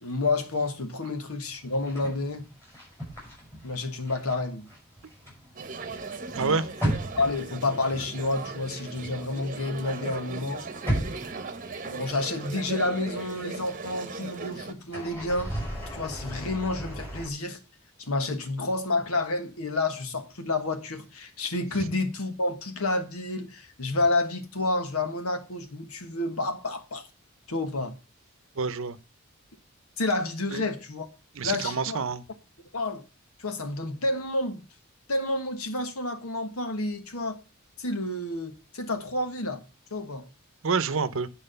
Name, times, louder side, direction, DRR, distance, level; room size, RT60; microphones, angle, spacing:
voice 1, 0.0-2.5 3.6-4.7 6.3-6.7 7.2-10.6 11.8-15.5 15.9-17.6 18.0-27.1 27.5-27.9 30.0-31.1 31.4-32.1 32.7-33.0 33.4-34.6 35.1-37.4 37.8-39.6 39.9-40.3, left 2 dB, 85° left, 1.4 m, -29 dB
sound 1, 1.7-4.4 4.6-9.8 10.1-12.2 12.5-12.6 14.8-17.3, right 1 dB, 10° left, 5.6 m, -35 dB
sound 2, 5.6-14.7, right 3 dB, 40° right, 1.0 m, -38 dB
voice 2, 28.6-29.0 30.5-30.6 31.4-32.2 40.6-41.3, right 5 dB, 65° right, 0.7 m, -27 dB
9.0 x 4.8 x 6.7 m
head